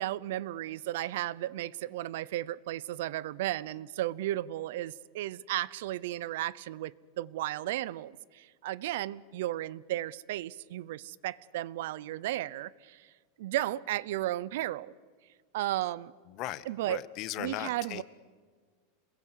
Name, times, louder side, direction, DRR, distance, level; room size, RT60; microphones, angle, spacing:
voice 1, 0.0-13.1 13.4-14.9 15.5-16.1 16.7-17.0 17.4-18.0, right 15 dB, 70° right, 0.7 m, -34 dB
voice 2, 16.3-18.0, left 15 dB, 40° left, 1.0 m, -38 dB
27.0 x 21.5 x 8.2 m
supercardioid pair, 155°, 0 cm